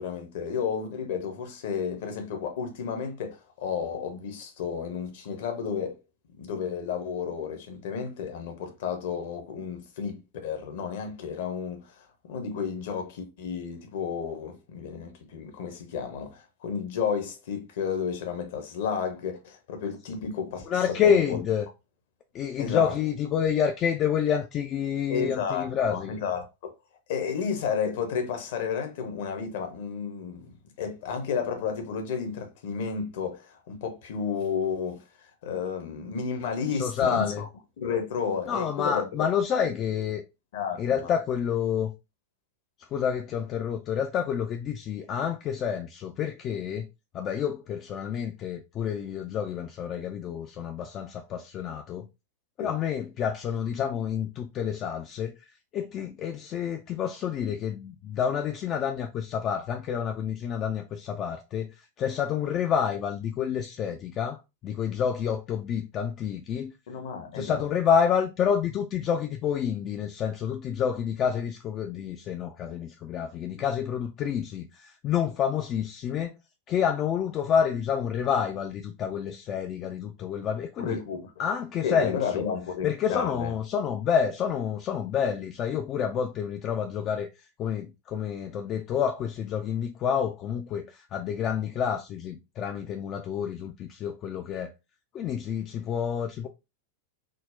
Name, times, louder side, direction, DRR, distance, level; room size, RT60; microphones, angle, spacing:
voice 1, 0.0-6.0 6.4-21.4 22.6-22.9 25.1-26.7 27.1-35.0 35.4-37.5 37.8-39.1 40.5-41.1 52.6-52.8 66.9-67.7 80.8-81.3 81.8-83.6, left 6 dB, 55° left, 0.8 m, -32 dB
voice 2, 20.7-21.7 22.3-26.2 36.8-37.4 38.5-40.2 40.8-41.9 42.9-46.9 47.1-52.1 52.6-55.4 55.7-66.7 67.3-76.3 76.7-81.0 81.4-82.4 82.8-87.3 87.6-94.7 95.1-96.5, left 8 dB, 35° left, 0.3 m, -28 dB
3.7 x 2.0 x 2.6 m
figure-of-eight pair, 90°, 0 cm